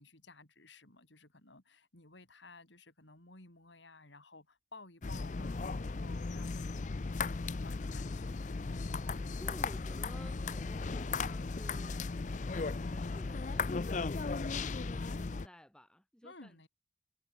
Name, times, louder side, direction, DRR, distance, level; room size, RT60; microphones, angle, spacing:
voice 1, 0.0-8.8 16.2-16.7, left 3 dB, 75° left, 5.1 m, -56 dB
sound 1, 5.0-15.5, left 4 dB, 40° left, 0.5 m, -36 dB
voice 2, 9.0-12.1 12.4-16.7, equal, 5° left, 1.1 m, -55 dB
head